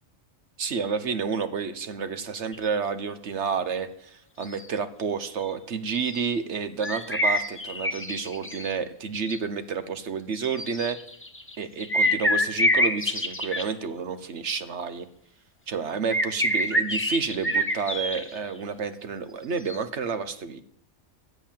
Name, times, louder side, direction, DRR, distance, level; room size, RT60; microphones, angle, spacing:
voice 1, 0.6-11.0 11.6-15.1 15.7-20.6, right 5 dB, 65° right, 11 dB, 1.2 m, -30 dB
sound 1, 2.5-2.6 4.4-4.7 5.5-5.6 5.9-6.3 6.8-8.7 9.1-9.4 10.4-11.5 11.8-13.6 16.1-18.4 19.7-19.8, equal, 10° left, 1.0 m, -26 dB
13.0 x 8.7 x 7.4 m, 0.69 s
omnidirectional pair, 1.3 m